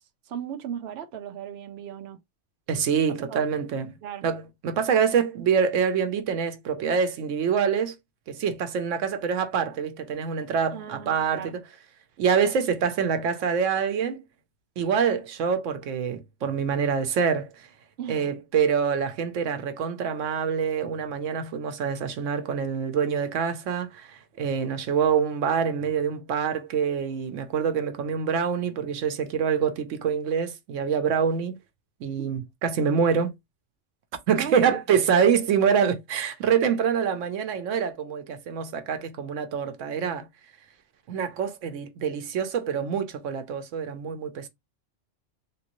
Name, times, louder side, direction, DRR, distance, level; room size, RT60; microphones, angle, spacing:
voice 1, 0.0-2.2 3.3-3.4 4.0-4.3 10.7-11.5 18.0-18.3 34.4-34.8, right 9 dB, 65° right, 0.8 m, -37 dB
voice 2, 2.7-4.0 4.2-7.9 8.3-11.6 12.2-14.2 14.8-17.7 18.1-31.6 32.0-33.3 34.3-40.3 41.1-44.5, right 7 dB, 85° right, 1.0 m, -25 dB
3.5 x 2.6 x 2.9 m
omnidirectional pair, 1.3 m